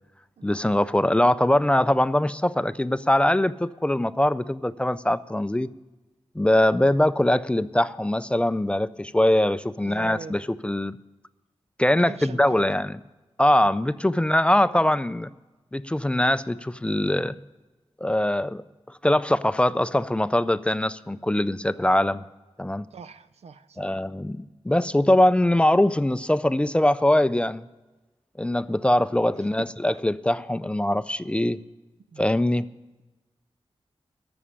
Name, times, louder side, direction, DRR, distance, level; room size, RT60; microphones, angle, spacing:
voice 1, 0.4-5.7 6.4-11.0 11.8-13.0 13.4-15.3 15.7-17.4 18.0-18.6 19.0-22.2 22.6-22.8 23.8-27.6 28.4-31.6 32.2-32.6, left 1 dB, 10° left, 15 dB, 0.3 m, -22 dB
voice 2, 9.8-10.4 12.0-12.7 14.6-14.9 17.3-17.4 22.9-24.0 29.6-29.7 32.1-32.2, right 5 dB, 90° right, 14 dB, 0.5 m, -41 dB
12.5 x 7.0 x 9.9 m, 1.1 s
wide cardioid pair, 125°, 11 cm